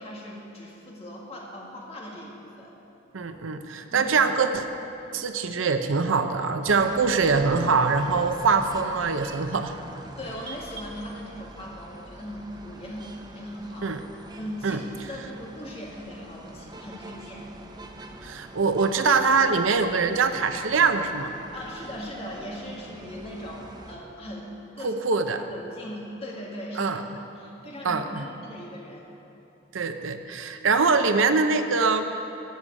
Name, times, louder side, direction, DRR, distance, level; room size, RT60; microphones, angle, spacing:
voice 1, 0.0-2.7 3.9-4.1 6.7-6.9 7.1-7.3 10.2-14.0 14.4-14.8 15.1-17.5 21.5-25.0 25.3-26.9 27.4-29.1, equal, 30° left, -3 dB, 1.9 m, -39 dB
voice 2, 3.1-4.6 5.1-9.7 13.8-14.0 14.6-14.8 18.2-21.3 24.8-25.4 26.8-27.0 27.8-28.2 29.7-32.1, right 4 dB, 85° right, 8 dB, 0.7 m, -23 dB
sound 1, 6.7-24.0, right 1 dB, 20° right, 0.6 m, -44 dB
13.0 x 6.4 x 8.6 m, 2.9 s
head